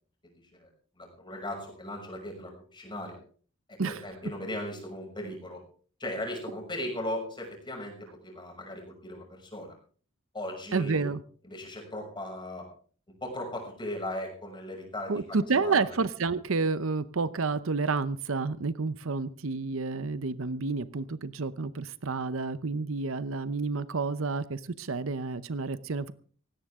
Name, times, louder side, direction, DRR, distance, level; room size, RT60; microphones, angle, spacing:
voice 1, 0.3-0.7 1.0-3.2 3.7-5.6 6.0-8.0 8.2-9.7 10.3-11.1 11.5-12.7 13.2-15.9, left 1 dB, 20° left, 1 dB, 6.4 m, -38 dB
voice 2, 10.7-11.2 15.1-26.1, right 4 dB, 70° right, 15 dB, 0.8 m, -30 dB
18.0 x 16.5 x 3.7 m, 0.43 s
head